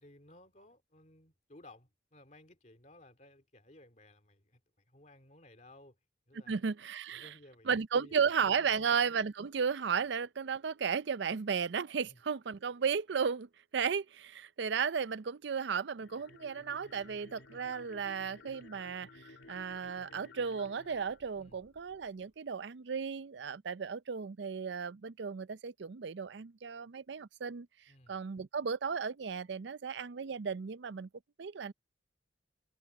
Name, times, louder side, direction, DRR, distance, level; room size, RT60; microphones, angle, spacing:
voice 1, 0.0-4.6 4.9-6.0 6.3-6.6 7.1-9.0 12.1-12.2 21.4-21.6 27.9-28.2, left 1 dB, 40° left, 2.7 m, -58 dB
voice 2, 6.5-7.3 7.7-27.7 28.1-31.1 31.4-31.7, right 6 dB, 70° right, 0.5 m, -34 dB
sound 1, 15.9-22.2, left 2 dB, 85° left, 2.7 m, -56 dB
head